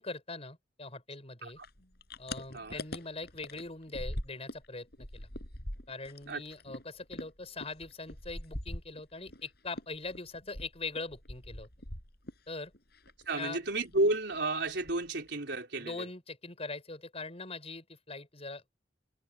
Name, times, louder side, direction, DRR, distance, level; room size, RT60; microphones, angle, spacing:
voice 1, 0.0-1.6 2.2-5.3 5.9-11.7 12.5-12.7 13.4-13.6 15.8-18.7, left 3 dB, 35° left, 7.3 m, -42 dB
sound 1, 1.6-4.7 4.9-9.4 9.7-12.5 12.7-13.4 13.7-14.0 14.3-14.4 14.7-15.3, left 1 dB, 65° left, 7.1 m, -42 dB
voice 2, 13.3-16.1, right 2 dB, 65° right, 4.6 m, -31 dB
head